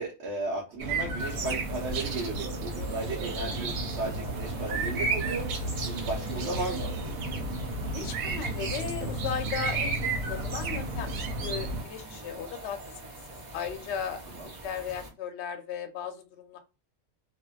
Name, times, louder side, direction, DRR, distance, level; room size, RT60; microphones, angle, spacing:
voice 1, 0.0-6.9 12.0-12.4 14.3-14.5, right 2 dB, 60° right, -3 dB, 1.0 m, -35 dB
sound 1, 0.8-11.8, right 2 dB, 90° right, 1.1 m, -32 dB
sound 2, 1.2-15.1, right 2 dB, 45° right, 0.6 m, -44 dB
voice 2, 7.9-12.8 13.5-16.6, left 7 dB, 65° left, 6 dB, 0.8 m, -36 dB
2.6 x 2.1 x 2.2 m, 0.30 s
omnidirectional pair, 1.4 m